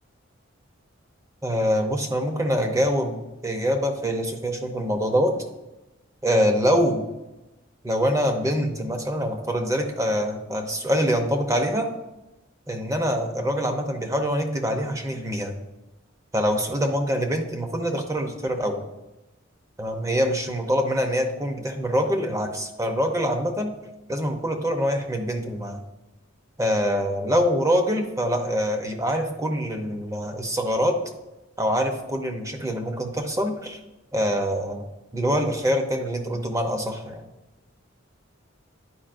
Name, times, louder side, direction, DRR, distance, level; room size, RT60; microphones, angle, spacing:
voice 1, 1.4-5.4 6.2-7.0 7.8-11.9 12.7-15.5 16.3-18.8 19.8-23.7 24.1-25.8 26.6-31.0 31.6-33.8 34.1-34.9 35.1-37.2, equal, 15° right, 4 dB, 0.7 m, -24 dB
10.0 x 4.9 x 2.5 m, 1.0 s
head